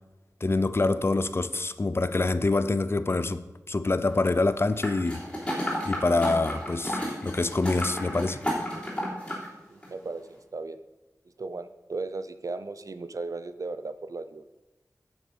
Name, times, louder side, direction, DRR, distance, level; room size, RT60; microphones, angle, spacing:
voice 1, 0.4-5.2 5.9-8.4, left 3 dB, 40° left, 0.5 m, -26 dB
sound 1, 4.8-9.5 9.8-9.9, equal, 15° left, 3.5 m, -32 dB
voice 2, 9.7-10.8 11.4-14.4, right 3 dB, 60° right, 0.6 m, -36 dB
9.3 x 7.1 x 5.5 m
wide cardioid pair, 75°, 6 cm